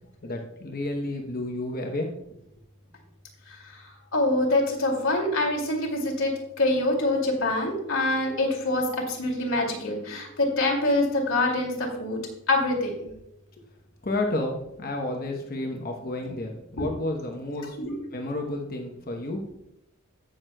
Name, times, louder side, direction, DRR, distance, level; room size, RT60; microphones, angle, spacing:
voice 1, 0.2-2.1 14.0-17.8 18.1-19.4, left 2 dB, 40° left, 1 dB, 0.9 m, -31 dB
voice 2, 3.5-12.2 12.5-13.1 17.8-18.0, left 2 dB, 65° left, 0 dB, 2.3 m, -25 dB
16.5 x 6.2 x 2.2 m, 0.82 s
head